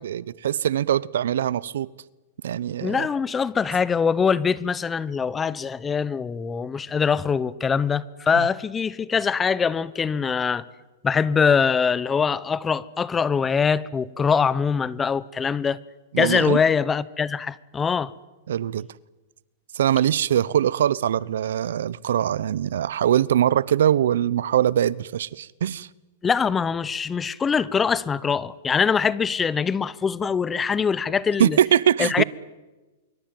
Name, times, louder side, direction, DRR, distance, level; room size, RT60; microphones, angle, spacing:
voice 1, 0.0-1.9 2.4-3.1 8.3-8.5 16.1-16.6 18.5-18.9 19.7-25.9 31.4-32.2, right 10 dB, 75° right, 0.9 m, -22 dB
voice 2, 2.8-10.6 11.0-15.8 16.2-18.1 26.2-31.6 32.0-32.2, left 6 dB, 15° left, 0.9 m, -23 dB
25.5 x 24.0 x 9.1 m
hypercardioid pair, 140°, 0 cm